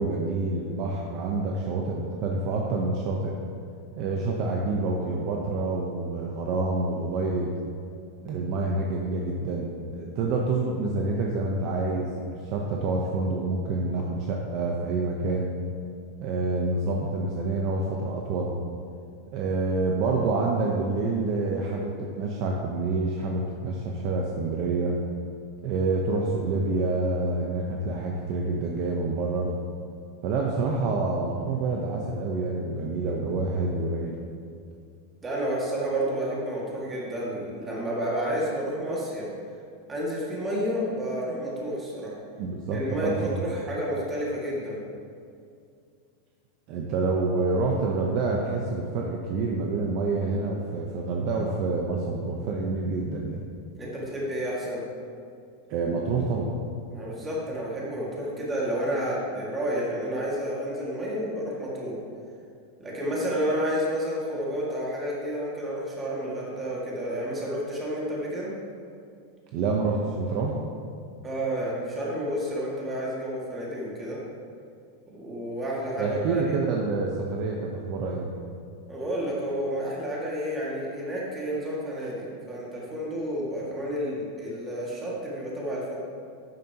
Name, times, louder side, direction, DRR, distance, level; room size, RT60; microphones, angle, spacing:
voice 1, 0.0-3.3 4.0-7.5 8.2-15.5 16.2-18.6 19.3-25.0 25.6-29.5 30.2-34.1 42.4-43.4 46.7-53.4 55.7-56.5 69.5-70.6 76.0-78.3, right 3 dB, 40° right, -1 dB, 0.9 m, -27 dB
voice 2, 35.2-39.3 39.9-42.1 42.7-44.8 53.8-54.8 56.9-62.0 62.8-68.5 71.2-74.2 75.1-76.6 78.9-86.0, equal, 15° right, -5 dB, 2.1 m, -30 dB
12.0 x 9.3 x 3.0 m, 2.4 s
supercardioid pair, 170°, 0 cm